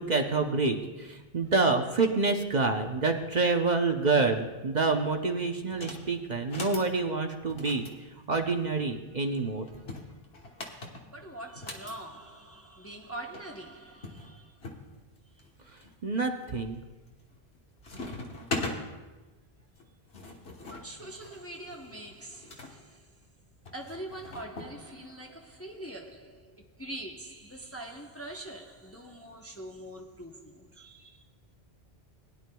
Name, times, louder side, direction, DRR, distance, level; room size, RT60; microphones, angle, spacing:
voice 1, 0.0-7.9 8.3-9.7 16.0-16.8, right 3 dB, 45° right, 0.9 m, -27 dB
sound 1, 5.7-6.0 6.4-6.9 7.5-8.9 9.7-12.0 13.0-13.1 13.3-13.4 14.0-14.8 15.4-15.9 16.4-16.8 17.1-17.6 17.8-18.8 19.8-22.7 23.7-24.7, left 2 dB, 70° left, 1.6 m, -40 dB
voice 2, 9.6-10.2 10.5-10.6 11.1-14.7 15.3-15.5 20.6-23.2 23.7-31.3, right 1 dB, 15° left, 0.8 m, -44 dB
20.5 x 11.0 x 2.3 m
omnidirectional pair, 1.1 m